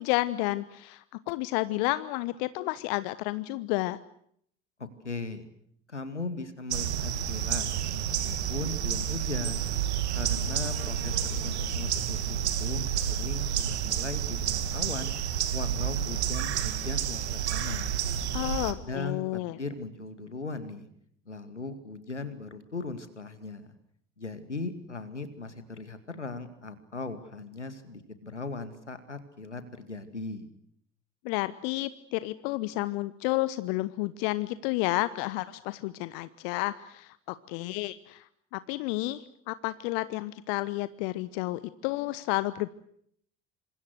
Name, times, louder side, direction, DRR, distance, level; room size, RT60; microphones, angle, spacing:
voice 1, 0.0-4.0 18.3-19.6 31.2-38.3 38.5-42.7, left 19 dB, 60° left, 16 dB, 1.1 m, -31 dB
voice 2, 4.8-5.5 5.9-9.7 10.1-15.1 15.5-17.2 17.5-17.9 18.6-20.9 21.3-23.7 24.2-30.5, left 3 dB, 85° left, 11 dB, 2.3 m, -38 dB
sound 1, 6.7-18.7, right 9 dB, 70° right, 2.3 m, -30 dB
28.0 x 26.5 x 6.4 m, 0.68 s
figure-of-eight pair, 60°, 34 cm